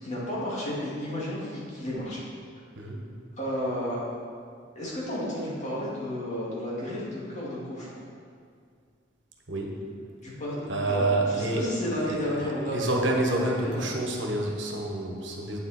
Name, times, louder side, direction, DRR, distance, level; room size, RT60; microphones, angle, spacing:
voice 1, 0.0-2.2 3.4-4.0 4.8-7.9 10.2-13.9, equal, 40° left, -6 dB, 2.4 m, -32 dB
voice 2, 9.5-9.8 10.7-11.6 12.0-12.2 12.7-15.6, right 2 dB, 75° right, 0 dB, 1.3 m, -28 dB
8.9 x 7.4 x 4.3 m, 2.2 s
head